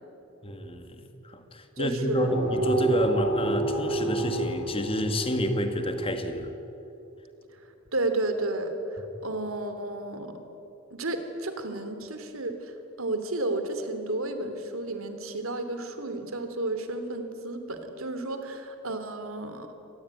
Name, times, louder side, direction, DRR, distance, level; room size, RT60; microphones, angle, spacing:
voice 1, 0.4-6.5, equal, 25° left, 7 dB, 1.9 m, -29 dB
voice 2, 1.8-2.3 7.9-10.3 10.9-19.7, right 2 dB, 75° right, 8 dB, 2.9 m, -32 dB
sound 1, 2.3-6.3, right 2 dB, 5° right, 7.9 m, -29 dB
26.5 x 19.5 x 9.6 m, 3.0 s
head